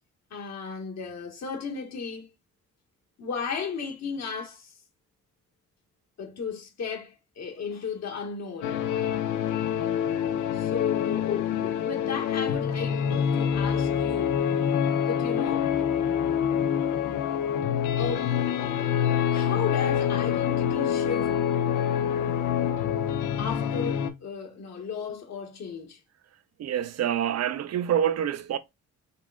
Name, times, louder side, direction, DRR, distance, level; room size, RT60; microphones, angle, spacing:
voice 1, 0.3-2.3 3.2-4.7 6.2-8.8 10.5-14.4 15.0-15.7 18.0-18.3 19.3-21.3 23.4-26.0, left 6 dB, 60° left, 1.6 m, -34 dB
sound 1, 8.6-24.1, left 8 dB, 85° left, 0.8 m, -26 dB
voice 2, 26.6-28.6, right 9 dB, 60° right, 0.6 m, -26 dB
5.4 x 3.1 x 2.3 m
cardioid pair, 90°, 30 cm